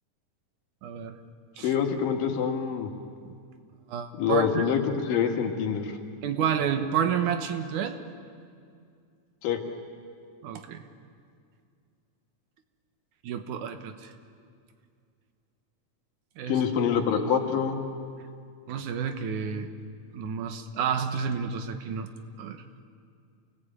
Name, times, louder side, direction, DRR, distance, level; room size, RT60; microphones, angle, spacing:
voice 1, 0.8-1.2 1.6-1.7 3.2-3.3 3.9-4.6 6.2-8.0 10.4-10.8 13.2-14.1 16.4-16.6 18.7-19.7 20.1-22.1 22.4-22.6, right 7 dB, 70° right, 8 dB, 2.5 m, -30 dB
voice 2, 1.6-2.9 4.2-5.9 9.4-9.6 16.5-17.8, left 7 dB, 80° left, 4 dB, 3.4 m, -26 dB
28.0 x 19.0 x 8.8 m, 2.3 s
omnidirectional pair, 3.9 m